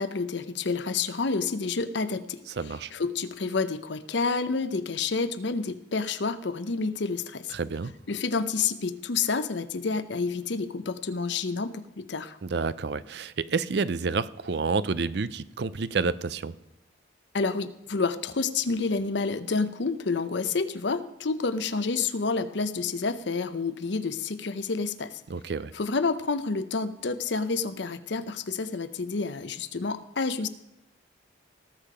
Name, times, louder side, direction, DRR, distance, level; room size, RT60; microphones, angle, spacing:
voice 1, 0.0-2.4 2.9-7.5 8.1-12.4 17.3-25.2 25.7-30.5, left 4 dB, 70° left, 12 dB, 0.7 m, -29 dB
voice 2, 2.6-2.9 7.5-7.9 12.4-16.5 25.3-25.7, right 4 dB, 60° right, 16 dB, 0.5 m, -29 dB
18.0 x 6.6 x 5.0 m, 0.90 s
head